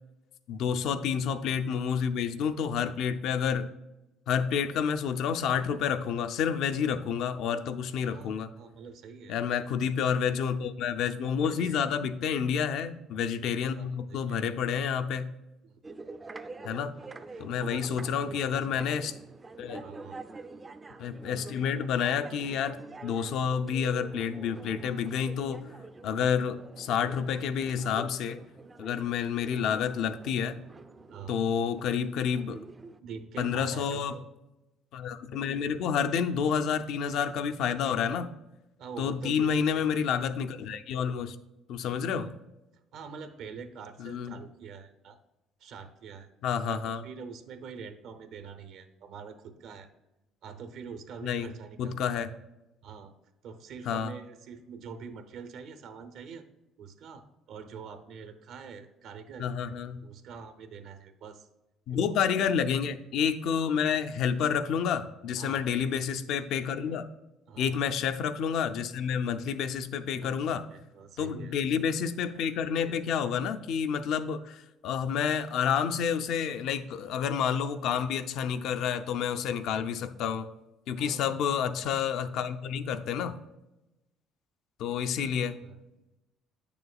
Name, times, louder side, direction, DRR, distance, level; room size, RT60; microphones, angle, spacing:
voice 1, 0.5-3.7 4.3-8.5 9.3-15.3 16.6-16.9 17.4-19.1 19.6-19.8 21.0-25.6 26.0-28.4 28.8-30.6 31.3-32.6 33.4-34.1 34.9-38.3 39.0-41.4 41.7-42.3 44.0-44.4 46.4-47.0 51.2-51.5 51.8-52.3 53.9-54.1 59.4-60.0 61.9-67.0 67.6-70.6 71.2-80.5 80.9-83.3 84.8-85.6, left 7 dB, 65° left, 9 dB, 0.4 m, -29 dB
voice 2, 8.0-9.6 11.4-11.7 13.4-14.4 15.6-15.8 17.3-18.6 19.8-20.2 31.1-31.4 33.0-34.3 38.8-39.8 42.9-45.2 45.6-46.3 46.7-49.9 50.4-52.2 52.8-53.1 53.4-56.4 56.8-59.5 60.0-61.5 61.9-62.4 65.4-65.7 67.5-67.8 70.1-71.6 81.0-81.5 85.4-85.8, right 6 dB, 65° right, 9 dB, 0.7 m, -45 dB
sound 1, 15.8-33.0, right 3 dB, 20° right, 0.4 m, -47 dB
8.6 x 6.8 x 2.3 m, 0.97 s
cardioid pair, 130°, 0 cm